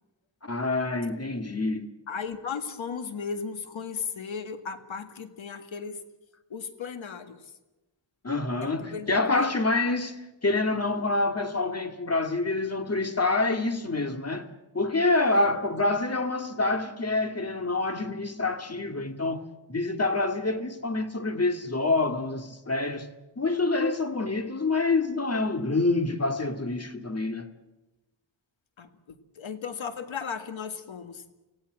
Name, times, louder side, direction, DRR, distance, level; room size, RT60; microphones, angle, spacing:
voice 1, 0.4-1.9 8.2-14.5 14.7-27.5, left 2 dB, 35° left, 2.2 m, -27 dB
voice 2, 2.1-6.0 6.5-7.5 8.6-9.5 15.4-15.5 28.8-31.2, left 6 dB, 90° left, 1.8 m, -36 dB
25.5 x 16.0 x 7.6 m
cardioid pair, 65°, 45 cm